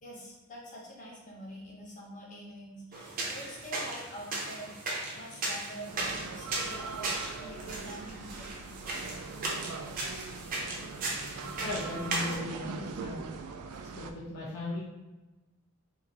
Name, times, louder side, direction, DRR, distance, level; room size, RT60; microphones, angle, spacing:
voice 1, 0.0-7.1 7.4-8.5 11.0-11.6 13.7-13.9, equal, 35° left, -4 dB, 0.9 m, -46 dB
sound 1, 2.9-12.4, right 2 dB, 40° right, 0.6 m, -37 dB
sound 2, 5.9-14.1, right 4 dB, 85° right, 0.3 m, -42 dB
voice 2, 11.6-13.2 13.9-14.8, left 2 dB, 65° left, -8 dB, 0.8 m, -37 dB
2.9 x 2.5 x 3.9 m, 1.1 s
head